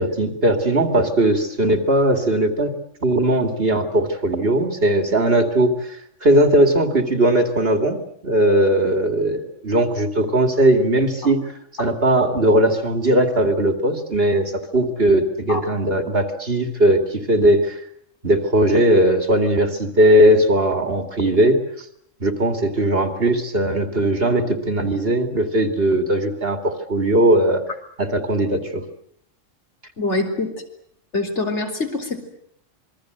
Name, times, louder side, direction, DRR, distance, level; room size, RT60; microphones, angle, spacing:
voice 1, 0.0-2.7 3.0-6.0 6.2-11.4 11.8-17.8 18.2-21.6 22.2-27.6 28.0-28.8, right 1 dB, 50° right, 6 dB, 2.6 m, -18 dB
voice 2, 30.0-30.5 31.1-32.2, left 2 dB, 60° left, 3 dB, 4.3 m, -24 dB
27.0 x 22.0 x 8.0 m, 0.68 s
omnidirectional pair, 1.3 m